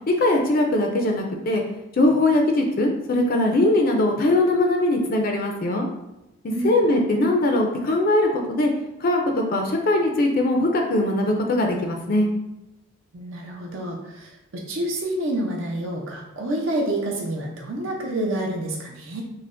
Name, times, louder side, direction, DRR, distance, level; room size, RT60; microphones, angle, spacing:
voice 1, 0.1-1.6 1.9-5.9 6.6-8.7 9.0-12.3, left 1 dB, 45° left, 2 dB, 0.4 m, -21 dB
voice 2, 13.1-19.2, right 1 dB, 65° right, -1 dB, 0.6 m, -28 dB
5.5 x 2.1 x 2.5 m, 0.93 s
head